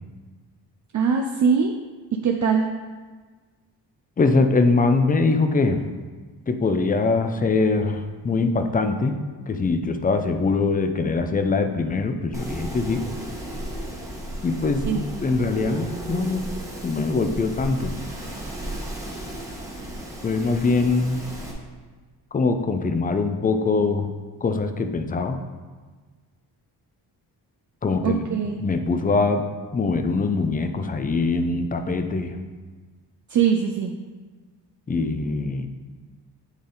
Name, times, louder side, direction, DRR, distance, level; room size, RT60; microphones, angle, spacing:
voice 1, 0.9-1.7 2.1-2.7 14.9-15.0 28.0-28.6 33.3-33.9, right 6 dB, 45° right, 3 dB, 0.5 m, -21 dB
voice 2, 4.2-5.8 6.5-9.2 9.5-13.0 14.4-16.5 16.8-18.0 20.2-21.2 22.3-24.2 24.4-25.4 27.8-28.3 28.6-29.5 29.7-32.4 34.9-35.7, left 3 dB, 20° left, 7 dB, 0.4 m, -23 dB
Wind, 12.3-21.5, right 1 dB, 10° right, 1.2 m, -34 dB
8.8 x 3.4 x 3.9 m, 1.4 s
cardioid pair, 90°, 41 cm